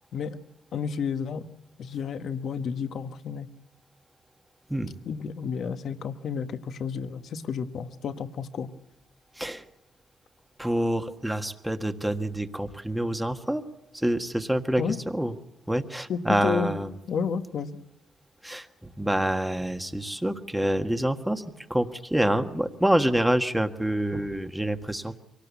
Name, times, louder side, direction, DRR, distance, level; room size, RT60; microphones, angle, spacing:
voice 1, 0.7-1.5 1.8-3.5 5.0-8.7 14.8-15.0 16.1-16.7 17.1-17.8, left 6 dB, 65° left, 9 dB, 1.4 m, -31 dB
voice 2, 10.6-13.6 13.9-15.3 15.7-16.9 18.4-18.7 19.0-21.4 21.7-25.2, right 1 dB, 5° right, 7 dB, 1.5 m, -27 dB
24.0 x 18.5 x 8.3 m, 0.84 s
cardioid pair, 90°, 0 cm